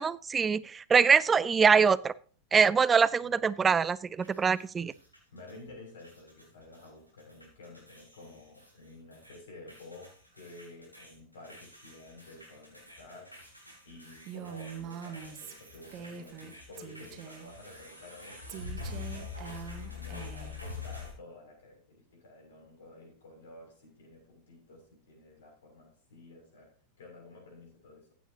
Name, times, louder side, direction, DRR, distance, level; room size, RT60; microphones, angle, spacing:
voice 1, 0.0-2.1 2.5-4.9, right 6 dB, 20° right, 19 dB, 0.5 m, -24 dB
sound 1, 4.2-5.7 6.0-6.9 7.2-9.4 9.7-21.1, left 4 dB, 90° left, 5.6 m, -46 dB
voice 2, 5.3-19.4 19.9-28.1, left 2 dB, 60° left, 0 dB, 7.0 m, -51 dB
Female speech woman speaking, 14.3-16.5 16.8-17.5 18.5-20.6, right 8 dB, 35° right, 1.4 m, -43 dB
15.5 x 9.1 x 3.0 m, 0.41 s
figure-of-eight pair, 90°, 0 cm